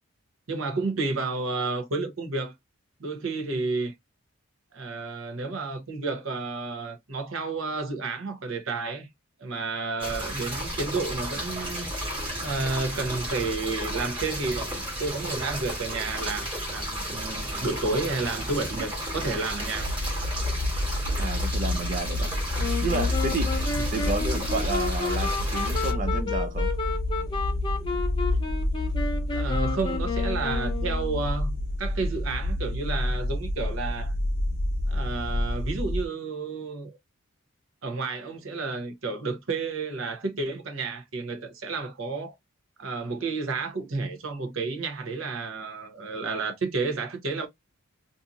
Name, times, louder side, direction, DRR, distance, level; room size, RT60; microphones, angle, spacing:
voice 1, 0.5-2.5 3.0-3.9 4.7-9.1 9.4-11.9 12.4-20.0 23.8-23.9 29.3-34.1 34.9-37.0 37.8-42.3 42.8-47.5, right 3 dB, 70° right, 0.8 m, -31 dB
sound 1, 10.0-25.9, equal, 25° right, 1.3 m, -33 dB
sound 2, 19.8-36.1, left 1 dB, 85° left, 0.7 m, -28 dB
voice 2, 21.2-22.3 22.8-26.7, right 3 dB, 40° right, 0.4 m, -31 dB
Wind instrument woodwind instrument, 22.6-31.3, left 4 dB, 20° left, 0.5 m, -32 dB
2.6 x 2.6 x 2.4 m
head